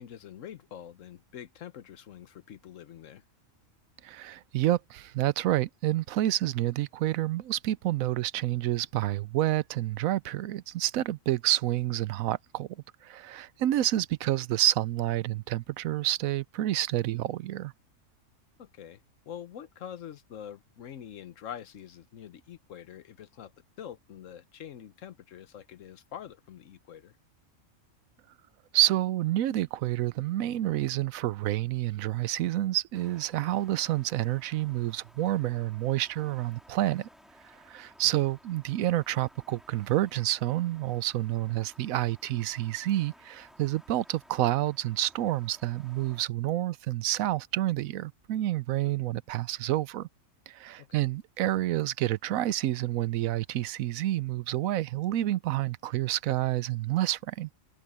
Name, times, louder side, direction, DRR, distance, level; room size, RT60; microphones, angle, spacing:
voice 1, 0.0-3.2 18.6-23.5 23.8-27.2 38.0-38.3 48.8-48.9 50.8-51.0, left 9 dB, 70° left, 1.2 m, -45 dB
voice 2, 4.0-17.7 28.7-37.1 37.4-50.1 50.5-57.5, right 14 dB, 90° right, 1.0 m, -29 dB
sound 1, 32.9-46.3, equal, ahead, 3.6 m, -58 dB
omnidirectional pair, 1.4 m